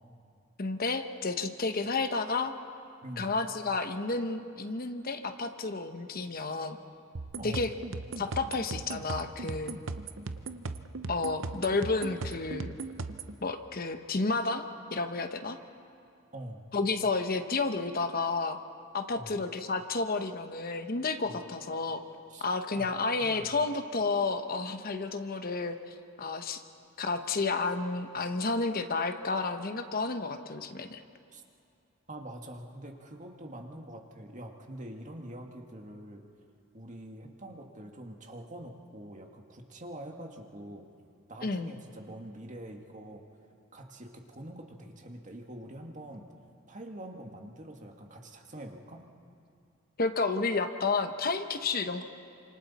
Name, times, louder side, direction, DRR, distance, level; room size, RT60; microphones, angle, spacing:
voice 1, 0.6-2.5 3.2-6.8 7.4-7.7 8.2-9.7 11.1-12.7 13.4-15.6 16.7-18.6 18.9-22.0 22.4-26.6 27.0-31.0 41.4-41.7 50.0-52.0, left 3 dB, 50° left, 8 dB, 1.0 m, -31 dB
voice 2, 3.0-3.3 7.4-7.7 16.3-16.7 19.1-19.3 21.2-21.4 22.3-22.5 22.7-23.5 31.3-31.4 32.1-36.2 36.7-40.9 41.3-43.2 43.7-46.3 46.7-49.0, right 1 dB, 40° right, 2 dB, 1.8 m, -45 dB
sound 1, 7.1-13.3, right 3 dB, 70° right, 0.8 m, -38 dB
28.5 x 26.5 x 4.2 m, 2.5 s
head